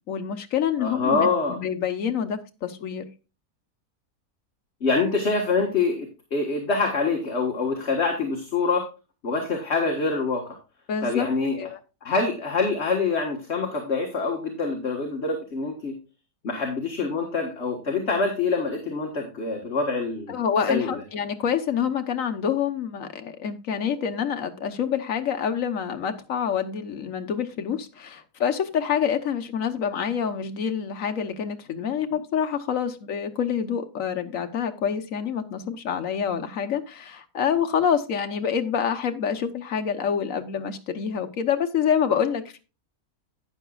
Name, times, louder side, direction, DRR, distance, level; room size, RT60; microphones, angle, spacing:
voice 1, 0.1-3.0 10.9-11.3 11.6-11.8 20.3-42.6, left 7 dB, 65° left, 7 dB, 1.4 m, -27 dB
voice 2, 0.8-1.6 4.8-8.8 9.2-10.6 11.0-11.7 12.0-15.9 16.4-20.4 20.7-20.9, left 4 dB, 45° left, 2 dB, 1.8 m, -25 dB
12.0 x 9.2 x 2.4 m, 0.31 s
omnidirectional pair, 1.6 m